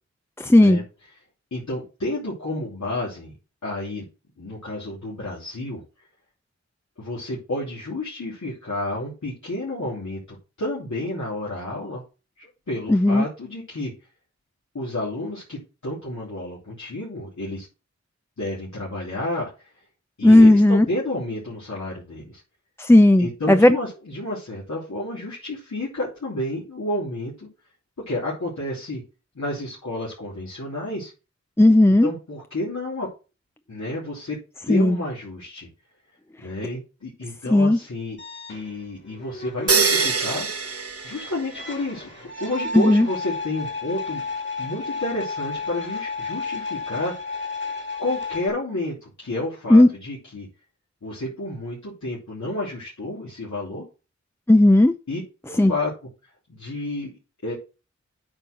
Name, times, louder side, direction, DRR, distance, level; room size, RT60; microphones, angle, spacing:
voice 1, 0.4-0.8 12.9-13.3 20.2-20.9 22.8-23.8 31.6-32.1 34.7-35.0 37.5-37.8 42.7-43.1 49.7-49.9 54.5-54.9 55.6-55.7, left 1 dB, 10° left, 0.6 m, -14 dB
voice 2, 1.5-3.3 3.6-4.1 4.4-5.8 7.0-12.0 12.4-13.9 14.7-17.7 18.4-19.7 20.2-22.4 23.2-27.5 28.1-29.0 29.3-31.1 32.0-33.1 33.7-34.4 34.7-35.7 36.4-38.2 38.5-40.5 41.0-42.1 42.4-44.2 44.6-47.1 48.0-50.5 51.0-53.9 55.1-55.9 56.5-57.1 57.4-57.5, left 1 dB, 75° left, 3.2 m, -30 dB
sound 1, 38.2-48.5, left 3 dB, 40° left, 2.5 m, -33 dB
sound 2, 39.7-41.8, right 5 dB, 55° right, 1.2 m, -24 dB
8.7 x 4.6 x 6.0 m
wide cardioid pair, 45°, 29 cm